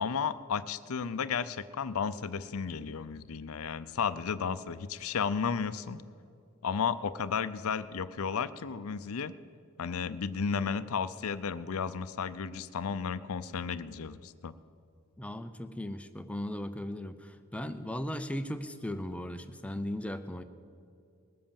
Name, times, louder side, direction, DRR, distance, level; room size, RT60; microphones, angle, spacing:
voice 1, 0.0-6.0 6.6-9.3 9.8-14.5, left 6 dB, 65° left, 13 dB, 0.5 m, -33 dB
voice 2, 15.2-20.4, left 1 dB, 5° left, 9 dB, 0.5 m, -37 dB
19.5 x 7.6 x 7.1 m, 2.4 s
head